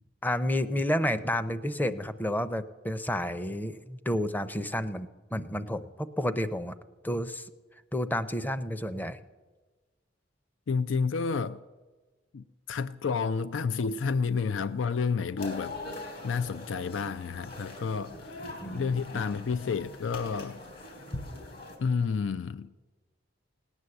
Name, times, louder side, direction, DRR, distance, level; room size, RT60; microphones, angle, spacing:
voice 1, 0.2-6.7 7.0-7.5 7.9-9.2 18.6-19.2, left 1 dB, 10° left, 0.6 m, -31 dB
voice 2, 10.7-11.6 12.3-15.8 16.2-20.6 21.8-22.7, left 5 dB, 85° left, 0.4 m, -30 dB
sound 1, 15.4-21.8, left 2 dB, 60° left, 3.6 m, -42 dB
18.0 x 9.7 x 7.8 m
head